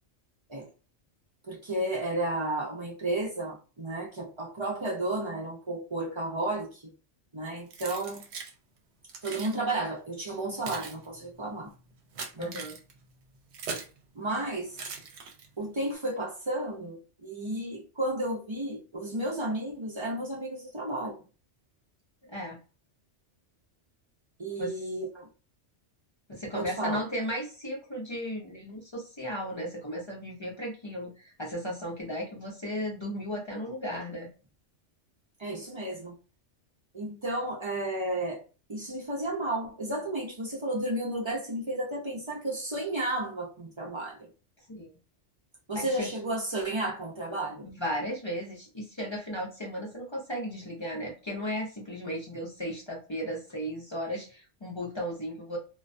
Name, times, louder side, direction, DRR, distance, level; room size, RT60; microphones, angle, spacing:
voice 1, 1.5-6.8 7.3-8.2 9.2-11.7 12.4-12.5 14.2-14.8 15.6-21.2 24.4-25.3 26.5-27.0 35.4-36.1 36.9-38.4 38.7-44.3 45.7-47.7, right 1 dB, 40° right, 0.4 m, -32 dB
Keys jangling, 7.7-8.5 9.1-9.6 10.3-14.0 14.7-15.7, right 5 dB, 70° right, 0.9 m, -40 dB
voice 2, 12.4-12.8 22.3-22.6 24.6-24.8 26.3-34.3 44.7-44.9 45.7-46.1 47.6-55.6, equal, 35° left, 0.5 m, -35 dB
2.3 x 2.2 x 2.5 m
omnidirectional pair, 1.2 m